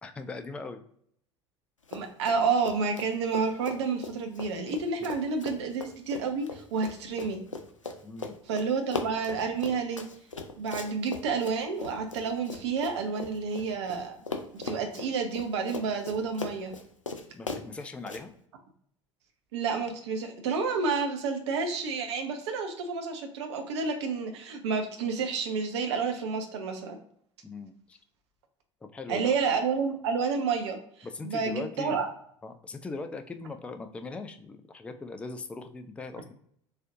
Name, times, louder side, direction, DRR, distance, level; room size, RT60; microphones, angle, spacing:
voice 1, 0.0-0.8 8.0-8.4 17.3-18.3 27.4-28.0 28.8-29.3 31.0-32.0 32.4-36.3, left 3 dB, 5° left, 8 dB, 0.3 m, -40 dB
Run, 1.8-2.4 2.6-14.0 14.3-18.2, left 3 dB, 85° left, 0.4 m, -38 dB
voice 2, 1.9-7.4 8.5-10.0 10.6-14.2 14.5-16.7 19.5-27.0 29.1-32.0, right 5 dB, 60° right, 4 dB, 0.7 m, -30 dB
4.1 x 2.4 x 2.6 m, 0.67 s
figure-of-eight pair, 70°, 16 cm